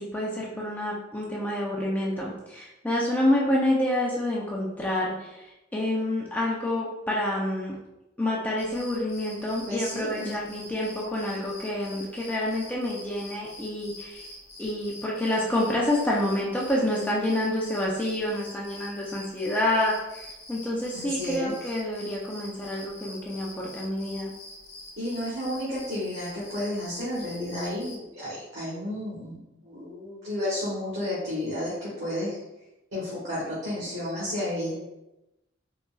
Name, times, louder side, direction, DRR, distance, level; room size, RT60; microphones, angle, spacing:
voice 1, 0.0-7.8 8.2-14.2 14.6-24.3, left 1 dB, 10° left, -4 dB, 0.4 m, -28 dB
sound 1, 8.6-28.0, left 1 dB, 35° left, 0.8 m, -46 dB
voice 2, 9.7-10.4 20.9-21.5 25.0-32.4 32.9-34.7, left 1 dB, 75° right, -10 dB, 1.2 m, -32 dB
3.8 x 2.3 x 2.3 m, 0.93 s
head